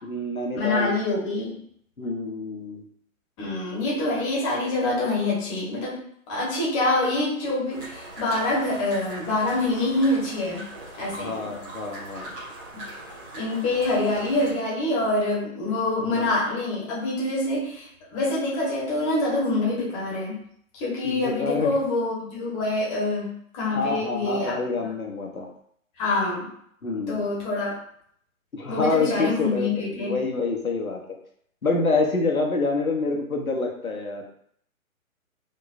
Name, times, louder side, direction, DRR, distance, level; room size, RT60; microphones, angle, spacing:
voice 1, 0.0-0.9 2.0-2.8 11.2-12.3 16.0-16.3 21.0-21.7 23.7-25.5 26.8-27.2 28.5-31.0 31.6-34.2, left 3 dB, 80° left, 1 dB, 1.2 m, -27 dB
voice 2, 0.5-1.6 3.4-6.0 6.3-10.6 11.0-11.5 13.3-20.4 20.7-24.9 26.0-26.5 27.1-27.7 28.7-30.1, left 2 dB, 20° left, -5 dB, 1.5 m, -26 dB
sound 1, 7.7-14.5, right 1 dB, 5° right, 0.5 m, -41 dB
5.2 x 2.9 x 2.6 m, 0.67 s
figure-of-eight pair, 130°, 42 cm